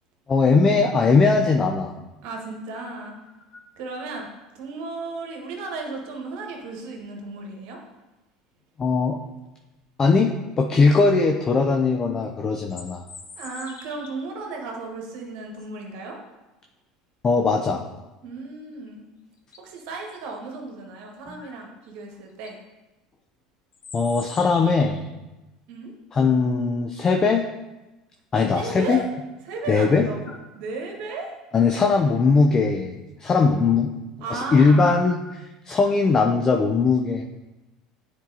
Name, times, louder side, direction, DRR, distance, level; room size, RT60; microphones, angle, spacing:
voice 1, 0.3-1.9 8.8-9.2 10.0-13.0 17.2-17.8 21.4-21.5 23.9-25.0 26.1-27.5 28.3-29.0 29.7-30.0 31.5-32.9 33.2-33.9 34.3-37.2, left 4 dB, 30° left, 3 dB, 0.5 m, -20 dB
voice 2, 2.2-3.2 3.8-4.3 4.5-7.8 13.4-16.2 18.2-19.1 19.6-22.6 25.7-25.9 28.5-29.1 29.4-31.3 34.2-35.0, right 3 dB, 65° right, 1 dB, 1.4 m, -34 dB
sound 1, 12.5-14.4 18.9-19.0 19.4-19.8 21.8-21.9 22.3-22.6 23.7-25.1, left 4 dB, 90° left, 0.6 m, -44 dB
9.3 x 4.6 x 2.8 m, 1.1 s
hypercardioid pair, 70°, 2 cm